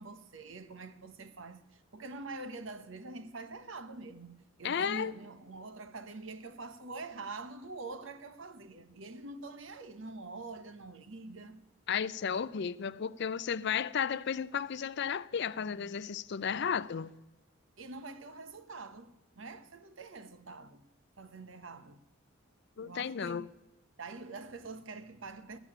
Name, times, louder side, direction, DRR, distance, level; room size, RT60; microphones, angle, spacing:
voice 1, 0.0-11.6 17.8-20.8 21.2-22.0 22.8-23.5 24.0-25.6, right 3 dB, 65° right, 1.0 m, -45 dB
voice 2, 4.6-5.1 11.9-17.1 22.8-23.5, left 7 dB, 55° left, 0.4 m, -33 dB
15.5 x 7.1 x 10.0 m
head